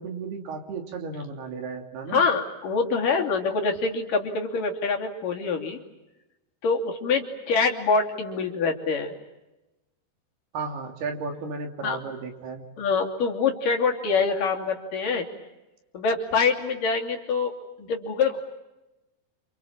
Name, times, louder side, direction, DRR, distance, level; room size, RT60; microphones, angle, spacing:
voice 1, 0.0-2.2 10.5-12.6, right 4 dB, 80° right, 4 dB, 4.9 m, -34 dB
voice 2, 2.1-5.8 6.6-9.1 11.8-12.0 12.8-15.3 15.9-17.5 17.8-18.4, left 4 dB, 60° left, 2 dB, 4.3 m, -25 dB
29.0 x 27.5 x 7.4 m, 0.99 s
omnidirectional pair, 4.5 m